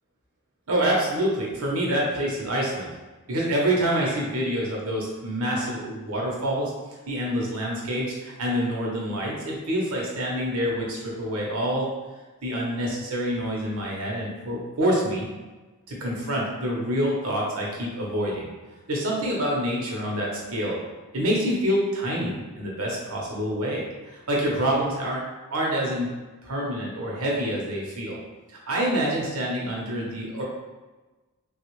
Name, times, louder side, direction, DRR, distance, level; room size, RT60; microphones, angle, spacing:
voice 1, 0.7-2.9 3.3-6.7 7.1-11.9 12.4-15.3 15.9-18.5 18.9-20.8 21.1-25.2 25.5-26.1 26.4-28.2 28.7-30.4, equal, 85° right, -3 dB, 0.9 m, -26 dB
3.4 x 2.3 x 3.0 m, 1.2 s
head